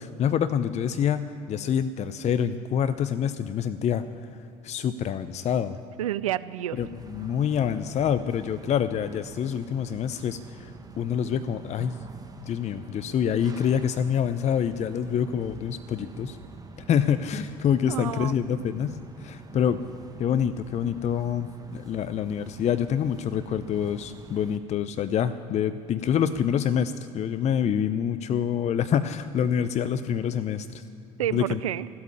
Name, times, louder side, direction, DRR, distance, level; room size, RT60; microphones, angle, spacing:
voice 1, 0.0-4.0 4.6-5.8 6.8-12.0 12.4-16.4 16.8-19.8 20.2-30.8 31.3-31.6, left 8 dB, 40° left, 12 dB, 0.6 m, -26 dB
voice 2, 6.0-6.8 17.9-18.6 31.2-31.9, right 12 dB, 85° right, 16 dB, 0.4 m, -30 dB
sound 1, 6.7-24.6, right 3 dB, 20° right, 1.3 m, -46 dB
14.0 x 8.5 x 9.9 m, 2.8 s
hypercardioid pair, 65°, 17 cm